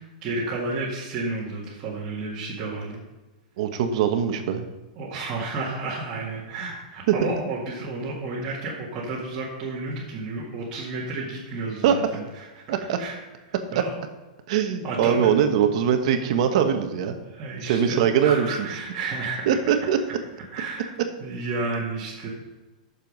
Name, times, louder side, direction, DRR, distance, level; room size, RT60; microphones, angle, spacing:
voice 1, 0.0-3.0 5.0-12.6 13.0-13.2 13.5-13.9 14.8-15.3 17.2-19.6 20.5-20.9 21.2-22.3, right 3 dB, 20° right, -8 dB, 2.0 m, -31 dB
voice 2, 3.6-4.6 7.1-7.2 11.8-12.0 12.7-13.0 13.7-13.8 14.5-17.1 17.6-18.7 19.5-20.0, right 8 dB, 45° right, 6 dB, 1.2 m, -22 dB
10.5 x 6.9 x 5.4 m, 1.1 s
supercardioid pair, 165°, 5 cm